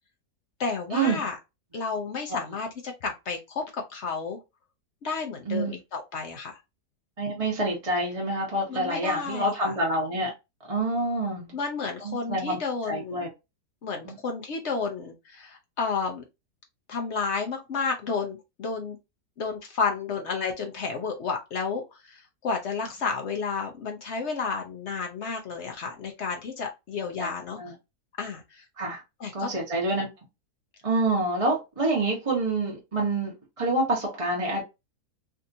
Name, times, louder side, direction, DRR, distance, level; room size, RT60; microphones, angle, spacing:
voice 1, 0.6-1.4 1.7-4.4 5.0-6.6 8.7-9.7 11.5-13.2 13.8-16.2 16.9-19.0 19.4-27.6 28.2-28.6 29.2-29.5, left 5 dB, 55° left, 0.8 m, -31 dB
voice 2, 7.2-10.3 10.7-11.5 12.0-12.6 12.9-13.3 14.0-14.2 27.2-27.3 27.6-27.7 28.8-29.0 29.3-30.1 30.8-34.6, right 2 dB, 25° right, 1.0 m, -27 dB
3.5 x 2.7 x 2.6 m
omnidirectional pair, 1.8 m